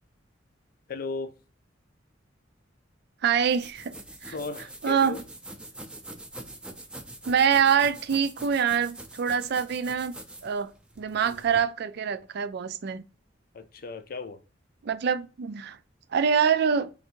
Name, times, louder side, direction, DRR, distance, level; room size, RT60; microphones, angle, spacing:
voice 1, 0.9-1.3 4.3-5.2 11.2-11.4 13.5-14.4, left 3 dB, 50° left, 0.5 m, -36 dB
voice 2, 3.2-3.9 4.2-4.3 4.8-5.2 7.2-10.1 10.4-10.7 11.0-13.0 14.8-15.8 16.1-16.9, right 7 dB, 55° right, 0.4 m, -25 dB
sound 1, 3.3-11.6, right 1 dB, 5° right, 0.5 m, -44 dB
3.3 x 2.6 x 4.4 m
head